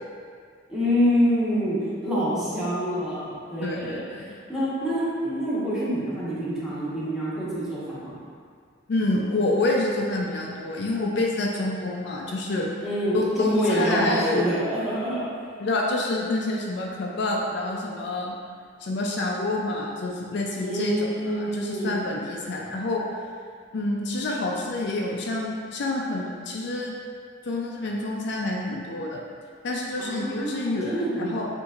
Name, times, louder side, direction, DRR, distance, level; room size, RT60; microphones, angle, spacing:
voice 1, 0.7-1.8 2.0-4.0 4.5-8.2 12.8-15.3 20.6-22.0 30.0-31.4, equal, ahead, -11 dB, 1.2 m, -26 dB
voice 2, 3.6-4.4 8.9-12.7 13.1-14.5 15.6-18.3 18.8-23.0 23.7-26.9 27.4-29.2 29.6-31.5, left 2 dB, 60° left, -2 dB, 0.4 m, -28 dB
6.8 x 2.6 x 2.4 m, 2.1 s
head